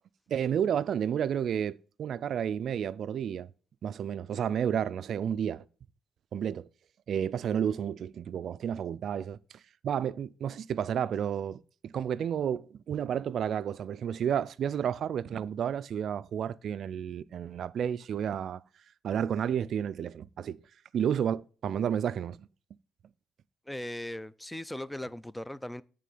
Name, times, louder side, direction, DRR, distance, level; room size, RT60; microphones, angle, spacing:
voice 1, 0.3-3.5 3.8-5.6 6.3-6.7 7.1-9.4 9.8-18.6 19.0-20.6 20.9-22.4, right 8 dB, 65° right, 0.3 m, -31 dB
voice 2, 23.7-25.8, left 1 dB, 5° left, 0.4 m, -38 dB
9.2 x 3.6 x 6.8 m
cardioid pair, 90°, 0 cm